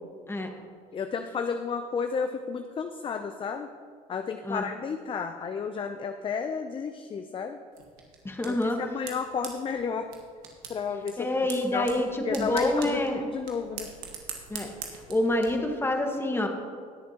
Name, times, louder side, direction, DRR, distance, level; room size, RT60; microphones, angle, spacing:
voice 1, 0.9-3.7 4.1-7.6 8.4-10.1 10.7-11.3 11.7-13.9, left 6 dB, 30° left, 7 dB, 0.5 m, -32 dB
sound 1, 7.7-15.5, right 7 dB, 85° right, 1.5 m, -43 dB
voice 2, 8.2-8.8 11.2-13.2 14.5-14.7 15.1-16.5, left 1 dB, 15° left, 3 dB, 1.5 m, -27 dB
19.0 x 6.9 x 2.9 m, 2.1 s
supercardioid pair, 85°, 18 cm